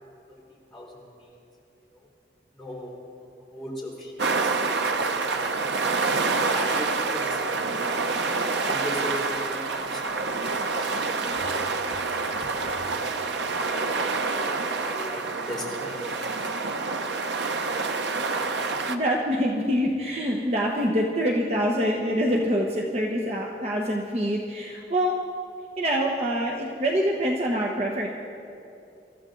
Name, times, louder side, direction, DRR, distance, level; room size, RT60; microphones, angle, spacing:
voice 1, 0.3-1.4 1.9-2.1 2.5-2.9 3.5-6.0 6.5-8.1 8.6-11.3 13.5-13.9 14.3-16.1, equal, ahead, -6 dB, 4.1 m, -39 dB
sound 1, 4.2-19.0, right 4 dB, 85° right, 0.8 m, -27 dB
voice 2, 18.5-25.1 25.8-28.1, equal, 35° right, -1 dB, 1.0 m, -25 dB
27.0 x 14.0 x 3.9 m, 2.7 s
head